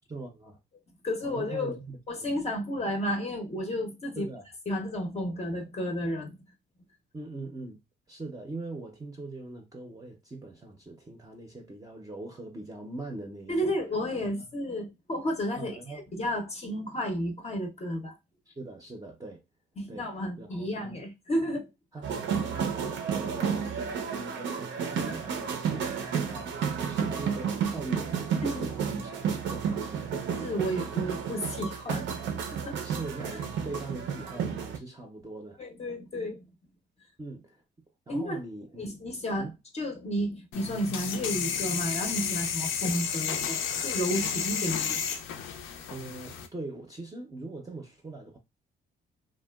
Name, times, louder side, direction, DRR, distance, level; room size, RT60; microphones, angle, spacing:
voice 1, 0.1-0.6 1.2-2.3 4.2-4.4 7.1-7.8 8.1-13.7 14.1-14.5 15.6-16.0 18.5-19.4 19.9-20.1 20.4-21.0 21.4-21.6 21.9-30.2 31.9-32.2 32.8-35.6 37.2-37.6 38.1-38.8 39.4-39.6 45.9-48.4, right 2 dB, 20° right, 0.5 m, -42 dB
voice 2, 1.0-1.8 2.1-4.3 4.7-6.4 13.5-15.8 16.1-18.2 19.8-21.7 28.4-29.1 30.4-32.0 32.5-32.8 35.6-36.5 38.1-38.4 38.8-45.0, equal, 30° left, 0.5 m, -32 dB
sound 1, 22.0-34.8, right 7 dB, 70° right, 0.5 m, -31 dB
sound 2, 40.5-46.5, left 7 dB, 80° left, 0.5 m, -32 dB
2.8 x 2.2 x 2.2 m
cardioid pair, 90°, 20 cm